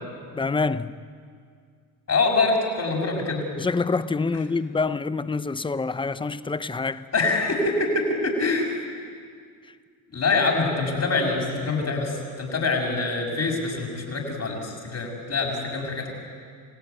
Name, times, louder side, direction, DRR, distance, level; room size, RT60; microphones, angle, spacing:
voice 1, 0.3-1.0 3.6-7.1, left 4 dB, 10° left, 0.7 m, -26 dB
voice 2, 2.1-3.4 7.1-8.8 10.1-16.1, left 3 dB, 35° left, 6.6 m, -25 dB
28.5 x 16.5 x 9.4 m
supercardioid pair, 90°, 46 cm